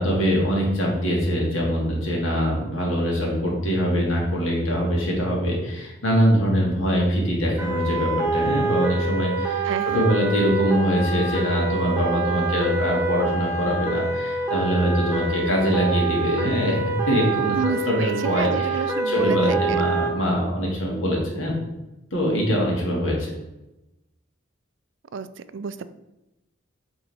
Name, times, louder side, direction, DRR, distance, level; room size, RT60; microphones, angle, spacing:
voice 1, 0.0-9.6 9.9-16.8 17.1-17.6 17.9-21.6 22.1-23.3, equal, 85° left, -2 dB, 2.0 m, -23 dB
sound 1, 7.6-20.1, right 3 dB, 15° right, 1.2 m, -26 dB
voice 2, 9.6-10.0 17.6-19.8 25.1-25.9, right 5 dB, 70° right, 13 dB, 0.4 m, -30 dB
8.8 x 3.6 x 3.4 m, 0.96 s
head